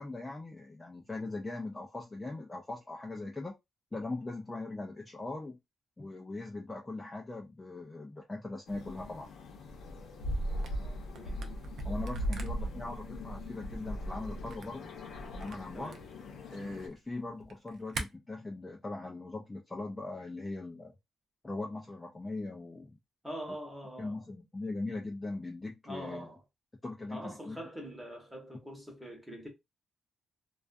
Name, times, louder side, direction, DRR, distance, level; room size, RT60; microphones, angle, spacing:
voice 1, 0.0-3.6 3.9-5.6 6.0-9.3 11.8-14.9 15.3-16.0 16.5-20.9 21.4-23.0 24.0-26.3 26.8-27.6, left 2 dB, 15° left, 0.4 m, -40 dB
sound 1, 8.7-16.9, equal, 80° left, 0.7 m, -39 dB
Camera, 10.5-18.0, right 4 dB, 60° right, 0.5 m, -46 dB
voice 2, 10.8-11.5 15.7-16.0 23.2-24.2 25.8-26.4 27.1-29.5, equal, 5° right, 0.9 m, -44 dB
2.4 x 2.2 x 2.4 m
wide cardioid pair, 165°, 0 cm